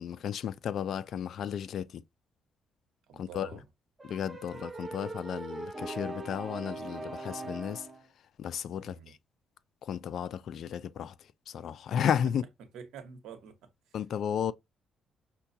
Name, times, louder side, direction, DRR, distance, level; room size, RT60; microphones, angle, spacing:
voice 1, 0.0-2.0 3.1-3.5 4.0-7.9 8.4-9.2 9.8-12.4 13.9-14.5, left 9 dB, 65° left, 0.3 m, -33 dB
voice 2, 3.1-3.6 8.8-9.2 12.7-14.0, right 7 dB, 80° right, 0.9 m, -48 dB
sound 1, 4.0-8.0, right 2 dB, 20° right, 0.9 m, -40 dB
5.6 x 2.2 x 2.6 m
cardioid pair, 90°, 0 cm